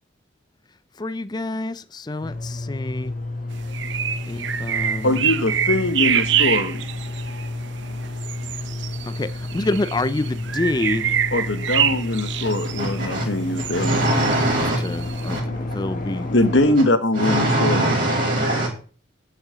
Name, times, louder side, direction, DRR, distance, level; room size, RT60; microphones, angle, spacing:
voice 1, 1.0-3.1 4.3-5.1 9.1-9.3 9.5-11.1 14.8-15.4 15.7-16.3, left 2 dB, 20° left, 0.4 m, -27 dB
sound 1, 2.2-16.8, left 2 dB, 40° left, 1.8 m, -31 dB
sound 2, 3.7-15.4, right 9 dB, 65° right, 0.7 m, -26 dB
voice 2, 5.0-6.8 11.3-14.3 16.3-17.9, left 2 dB, 70° left, 1.4 m, -22 dB
voice 3, 12.8-13.3 13.7-14.8 15.3-15.4 17.1-18.7, right 1 dB, 45° right, 3.2 m, -21 dB
10.5 x 5.8 x 6.8 m
head